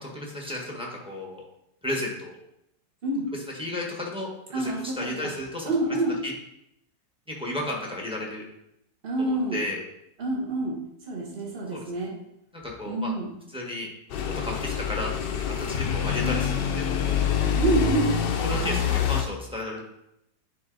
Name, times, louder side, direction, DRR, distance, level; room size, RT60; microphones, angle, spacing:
voice 1, 0.0-1.4 1.8-2.4 3.6-5.7 6.2-6.3 7.4-8.4 9.2-9.8 11.7-11.8 12.5-13.1 13.5-13.9 14.2-15.1 15.4-17.1 18.4-19.8, left 1 dB, 5° right, -2 dB, 1.2 m, -33 dB
voice 2, 4.5-5.1 5.6-6.2 9.0-9.6 10.2-10.8 11.1-12.1 12.8-13.3 16.2-16.4 17.6-18.2, right 1 dB, 35° right, -2 dB, 1.7 m, -27 dB
sound 1, 14.1-19.2, left 7 dB, 80° left, 1.4 m, -26 dB
10.0 x 3.9 x 3.9 m, 0.81 s
omnidirectional pair, 1.8 m